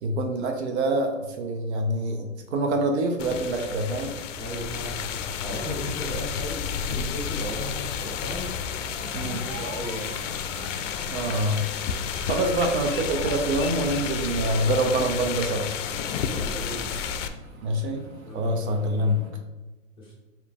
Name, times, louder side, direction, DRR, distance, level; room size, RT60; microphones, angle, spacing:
voice 1, 0.0-4.2 9.1-9.4 11.1-11.6 12.3-15.7 17.6-18.0 18.3-19.2, right 1 dB, 55° right, 4 dB, 0.7 m, -25 dB
sound 1, 3.2-17.3, left 7 dB, 65° left, 0.5 m, -31 dB
voice 2, 4.4-8.5 9.2-10.2 16.3-16.9 18.2-19.1 20.0-20.2, left 1 dB, 10° left, -6 dB, 0.9 m, -36 dB
sound 2, 8.7-19.3, equal, 85° right, 1.4 m, -49 dB
sound 3, 8.8-15.8, right 2 dB, 35° right, 1.0 m, -47 dB
4.8 x 2.8 x 3.5 m, 1.1 s
hypercardioid pair, 150°, 40 cm